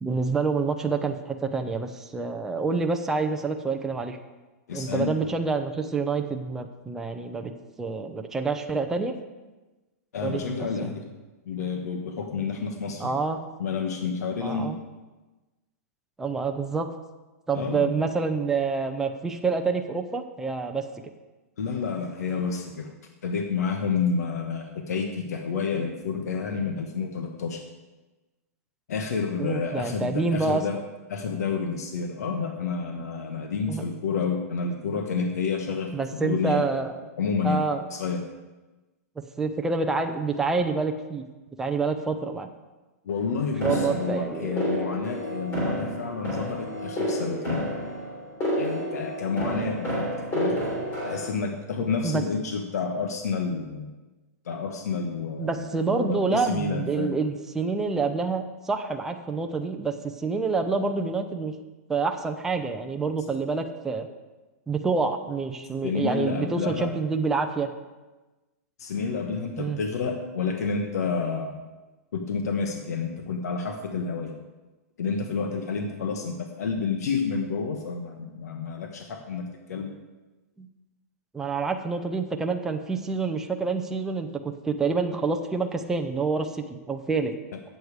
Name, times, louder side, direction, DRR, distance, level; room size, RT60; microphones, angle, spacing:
voice 1, 0.0-4.2 4.7-7.5 7.8-9.1 10.2-10.9 13.0-13.4 14.3-14.7 16.2-16.9 17.5-20.9 29.4-30.6 33.7-33.8 35.9-36.9 37.4-37.8 39.4-41.2 41.6-42.5 43.6-44.6 52.0-52.2 55.4-61.5 61.9-64.1 64.7-67.7 69.6-69.8 80.6-80.7 81.3-87.3, right 4 dB, 5° right, 4 dB, 0.5 m, -27 dB
voice 2, 4.7-5.2 10.1-11.0 11.4-13.2 13.6-14.8 17.5-17.9 21.6-22.9 23.2-27.6 28.9-30.8 31.1-36.6 37.2-37.6 37.9-38.2 43.0-47.7 48.6-50.1 50.3-50.6 51.0-53.9 54.4-57.1 65.8-66.9 68.8-71.6 72.1-74.4 75.0-79.9, left 5 dB, 75° left, 4 dB, 1.3 m, -29 dB
sound 1, 43.6-51.3, equal, 20° left, 3.3 m, -30 dB
12.0 x 8.0 x 4.8 m, 1.2 s
hypercardioid pair, 160°, 9 cm